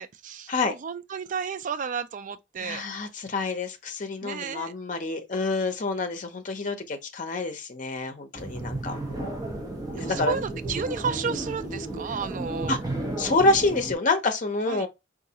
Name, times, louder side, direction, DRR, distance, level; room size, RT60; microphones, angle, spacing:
voice 1, 0.0-2.8 4.2-4.7 10.0-12.8 14.7-14.9, right 6 dB, 45° right, 0.4 m, -32 dB
voice 2, 2.6-9.4 9.9-10.4 12.7-12.8 13.2-14.9, left 3 dB, 45° left, 0.7 m, -27 dB
sound 1, 8.3-14.0, right 1 dB, 20° right, 0.8 m, -33 dB
3.9 x 2.5 x 2.8 m
head